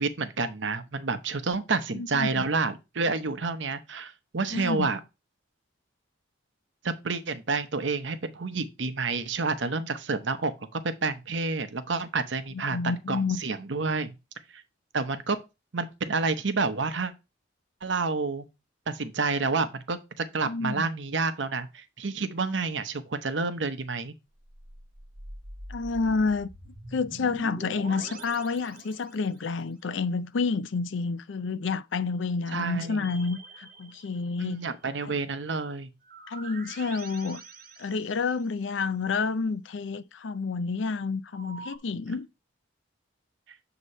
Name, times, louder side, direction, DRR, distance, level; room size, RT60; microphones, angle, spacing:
voice 1, 0.0-5.0 6.8-12.8 13.1-14.1 14.5-14.6 14.9-15.4 15.7-17.1 17.8-18.5 18.9-24.1 32.5-33.1 34.4-35.9, right 4 dB, 70° right, 0.8 m, -29 dB
voice 2, 1.9-2.4 4.5-4.9 12.7-13.4 20.5-20.9 25.7-26.5 26.9-34.6 36.3-37.4 37.8-42.3, left 4 dB, 75° left, 0.5 m, -29 dB
sound 1, 24.4-29.5 32.8-34.6 36.0-38.6 41.3-41.8, right 2 dB, 45° right, 1.0 m, -45 dB
8.0 x 2.9 x 5.4 m
head